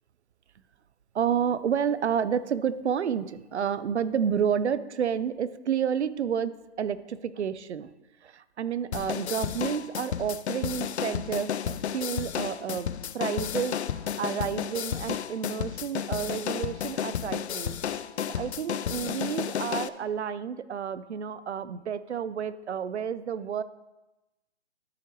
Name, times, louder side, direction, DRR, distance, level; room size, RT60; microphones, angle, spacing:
voice 1, 1.1-7.9 8.2-17.8 18.3-23.6, right 8 dB, 70° right, 15 dB, 0.7 m, -30 dB
sound 1, 8.9-19.9, left 9 dB, 70° left, 0.5 m, -32 dB
13.0 x 5.8 x 3.1 m, 1.0 s
hypercardioid pair, 165°, 34 cm